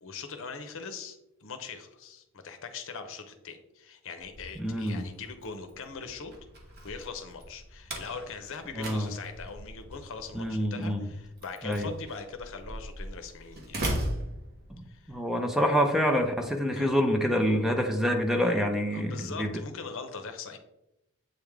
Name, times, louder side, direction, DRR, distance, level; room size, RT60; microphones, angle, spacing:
voice 1, 0.0-6.3 6.8-13.8 14.9-15.2 16.7-16.9 18.9-20.6, left 5 dB, 65° left, 7 dB, 0.7 m, -41 dB
Slam, 4.2-15.1, right 1 dB, 50° right, 1.1 m, -39 dB
voice 2, 4.6-5.0 8.8-9.1 10.3-11.0 11.6-11.9 14.7-19.5, equal, ahead, 4 dB, 0.5 m, -27 dB
7.9 x 3.5 x 3.5 m, 0.88 s
head